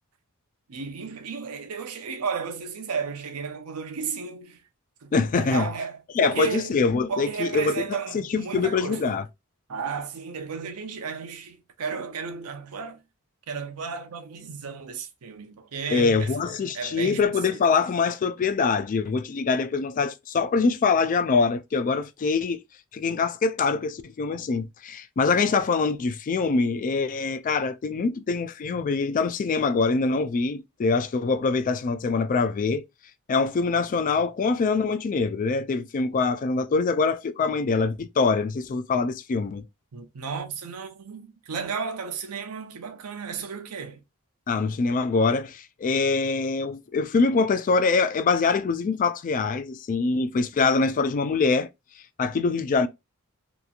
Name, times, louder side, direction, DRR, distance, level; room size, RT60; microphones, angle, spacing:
voice 1, 0.7-4.6 5.0-6.8 7.1-9.2 9.7-13.0 13.5-16.3 16.6-17.7 39.9-44.0, right 5 dB, 85° right, 0.6 m, -34 dB
voice 2, 5.1-5.7 6.1-9.2 15.9-22.6 22.9-32.8 33.3-39.7 44.5-51.7 52.2-52.9, left 4 dB, 35° left, 0.3 m, -24 dB
2.9 x 2.4 x 2.3 m
head